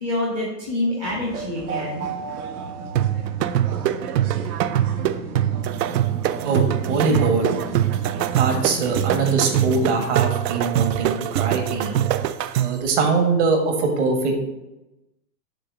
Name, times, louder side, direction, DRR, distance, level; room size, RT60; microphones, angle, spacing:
voice 1, 0.0-2.1, left 1 dB, 5° right, -6 dB, 0.4 m, -26 dB
sound 1, 1.1-10.1, right 4 dB, 65° right, 1.0 m, -33 dB
sound 2, 3.0-12.9, right 12 dB, 80° right, 0.6 m, -23 dB
voice 2, 6.4-7.5 8.4-12.0 12.6-14.4, right 4 dB, 45° right, 3 dB, 1.5 m, -22 dB
6.8 x 3.3 x 6.1 m, 0.98 s
hypercardioid pair, 150°, 49 cm